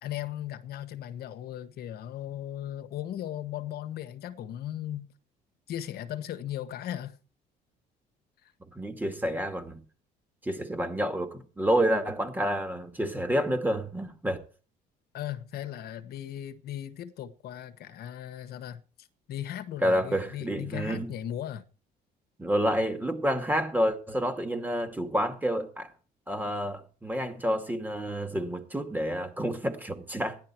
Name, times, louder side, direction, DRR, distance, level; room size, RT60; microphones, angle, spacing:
voice 1, 0.0-5.1 5.7-7.2 8.4-8.5 15.1-21.6, left 11 dB, 70° left, 1.3 m, -37 dB
voice 2, 8.7-9.8 10.4-14.4 19.8-21.1 22.4-25.9 26.3-30.4, equal, 10° right, 2.4 m, -29 dB
14.5 x 11.0 x 4.5 m
cardioid pair, 110°, 17 cm